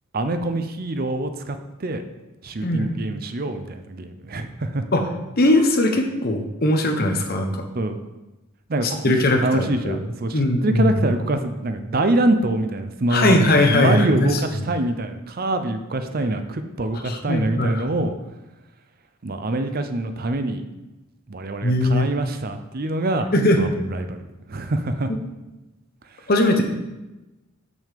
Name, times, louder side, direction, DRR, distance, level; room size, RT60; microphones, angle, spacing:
voice 1, 0.1-2.0 2.4-4.9 7.7-8.0 8.7-9.1 9.4-18.1 19.2-20.6 21.3-23.3 23.5-24.2 24.5-25.1, right 2 dB, 45° right, 8 dB, 0.6 m, -25 dB
voice 2, 2.6-3.0 4.9-5.1 5.4-7.7 8.8-9.9 10.3-11.0 13.1-14.4 17.0-17.8 21.6-22.1 23.3-23.6 26.3-26.6, left 1 dB, 45° left, 4 dB, 0.9 m, -20 dB
6.1 x 5.4 x 6.7 m, 1.0 s
head